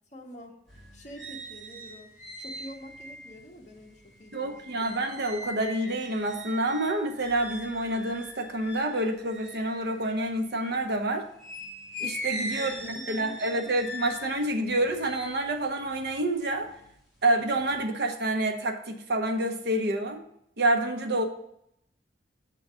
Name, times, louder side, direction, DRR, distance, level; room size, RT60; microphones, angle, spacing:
voice 1, 0.1-5.0 12.6-13.5, equal, 40° left, 0 dB, 1.3 m, -47 dB
sound 1, 0.7-10.8 11.4-16.9 17.3-17.9, equal, ahead, 2.2 m, -41 dB
voice 2, 4.3-11.3 12.0-16.7 17.2-20.2 20.6-21.2, right 1 dB, 65° right, 4 dB, 0.9 m, -28 dB
6.9 x 3.8 x 6.1 m, 0.75 s
head